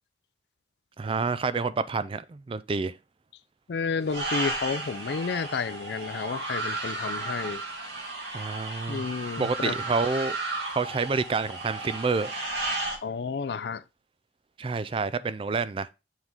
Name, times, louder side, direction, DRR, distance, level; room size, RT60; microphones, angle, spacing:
voice 1, 1.0-2.9 8.3-9.0 9.4-10.4 10.7-12.3 14.6-15.9, right 4 dB, 30° right, 0.3 m, -28 dB
voice 2, 3.7-7.6 8.9-9.8 13.0-13.8, left 5 dB, 60° left, 0.4 m, -31 dB
sound 1, 4.1-13.0, right 2 dB, 75° right, 1.9 m, -34 dB
7.2 x 4.0 x 3.6 m
head